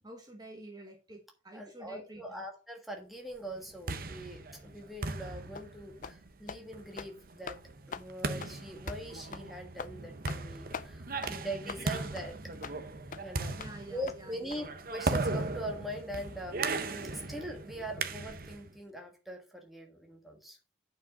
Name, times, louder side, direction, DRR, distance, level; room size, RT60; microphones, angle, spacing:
voice 1, 0.0-2.5 13.5-14.6, right 1 dB, 20° right, 2 dB, 1.2 m, -49 dB
voice 2, 1.5-7.6 7.9-12.4 13.2-13.6 13.9-20.6, right 1 dB, ahead, 1 dB, 1.4 m, -42 dB
sound 1, 3.5-18.7, right 3 dB, 50° right, 0.8 m, -38 dB
sound 2, 5.5-5.7 6.0-6.2 6.5-6.6 6.9-7.1 7.5-7.6 7.9-8.1 8.4-8.5 8.9-9.0 9.3-9.5 9.8-9.9 10.3-10.4 10.7-10.9 11.2-11.3 11.7-11.8 12.2-12.3 12.6-12.8 13.1-13.2 13.6-13.7 14.1-14.2 14.5-14.6, left 5 dB, 40° left, 0.4 m, -42 dB
8.5 x 4.9 x 5.2 m, 0.34 s
head